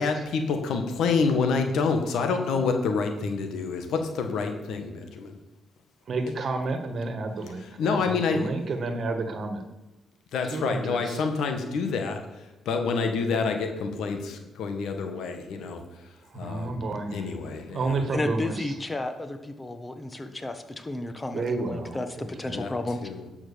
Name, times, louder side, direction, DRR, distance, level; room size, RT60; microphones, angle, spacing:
voice 1, 0.0-5.4 7.6-8.4 10.3-12.2 12.6-15.8 16.3-16.8 17.1-18.0 22.5-22.7 23.0-23.2, left 4 dB, 75° left, 5 dB, 1.6 m, -27 dB
voice 2, 6.1-9.6 10.4-11.2 16.3-17.3 17.7-18.7 21.3-22.6, right 3 dB, 50° right, 7 dB, 1.6 m, -31 dB
voice 3, 18.1-23.0, left 2 dB, 20° left, 7 dB, 1.3 m, -32 dB
11.5 x 6.0 x 7.0 m, 1.1 s
cardioid pair, 90°, 0 cm